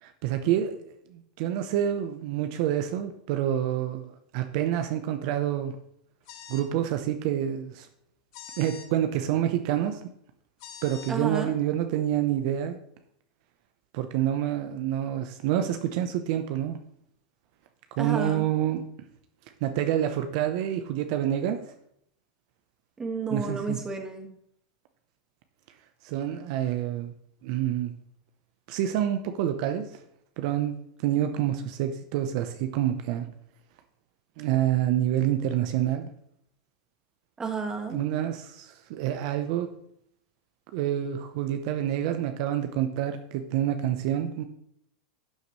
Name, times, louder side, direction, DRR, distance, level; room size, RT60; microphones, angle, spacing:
voice 1, 0.0-5.8 6.5-7.9 8.6-10.1 10.8-12.8 13.9-16.8 18.0-18.8 19.6-21.7 23.3-23.8 26.0-27.1 27.4-27.9 28.7-30.0 30.4-30.8 31.0-33.3 34.4-36.1 37.9-39.7 40.7-44.4, right 11 dB, 65° right, 7 dB, 0.9 m, -27 dB
sound 1, 6.3-6.7 8.3-8.9 10.6-11.1, left 8 dB, 65° left, 1.4 m, -44 dB
voice 2, 11.1-11.5 18.0-18.4 23.0-24.3 37.4-38.0, right 4 dB, 15° right, 4 dB, 1.8 m, -32 dB
12.0 x 6.6 x 3.2 m, 0.71 s
supercardioid pair, 125°, 4 cm